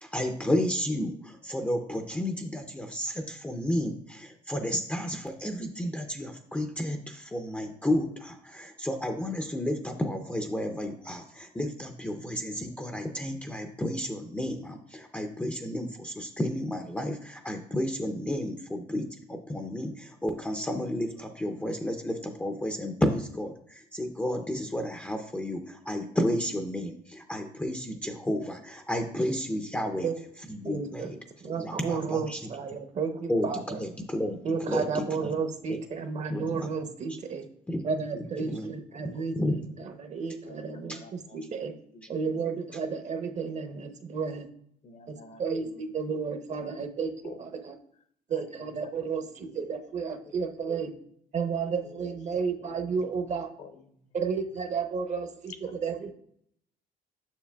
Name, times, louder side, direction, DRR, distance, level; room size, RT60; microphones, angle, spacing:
voice 1, 0.0-30.1 30.5-31.2 31.4-32.4 33.3-34.4 34.7-35.3 35.7-35.8 36.3-36.7 37.7-37.8 38.5-38.7 39.0-39.6 40.9-41.0, left 1 dB, 10° left, 4 dB, 0.5 m, -32 dB
voice 2, 29.8-30.1 30.6-31.1 31.4-33.8 34.4-37.5 37.8-41.7 42.1-44.5 45.1-47.7 48.3-50.9 51.3-53.5 54.1-55.5 55.8-56.1, right 5 dB, 45° right, 7 dB, 0.8 m, -32 dB
voice 3, 40.4-41.4 41.9-42.4 43.4-43.6 44.8-46.7 47.2-47.5 48.3-49.7 50.2-50.4 51.8-54.0 55.5-56.1, left 3 dB, 45° left, 9 dB, 0.7 m, -51 dB
7.2 x 6.4 x 2.3 m, 0.67 s
cardioid pair, 110°, 17 cm